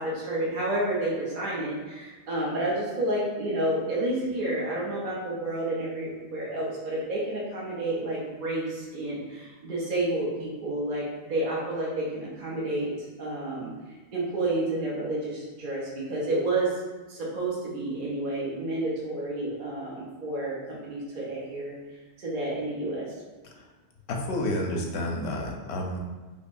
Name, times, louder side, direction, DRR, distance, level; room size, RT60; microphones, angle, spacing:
voice 1, 0.0-12.9 13.2-13.7 14.1-16.8 17.1-21.7 22.2-23.0, right 1 dB, 55° right, -6 dB, 0.9 m, -30 dB
voice 2, 24.1-26.0, left 1 dB, 90° left, 1 dB, 0.9 m, -30 dB
5.1 x 2.1 x 2.5 m, 1.2 s
omnidirectional pair, 1.1 m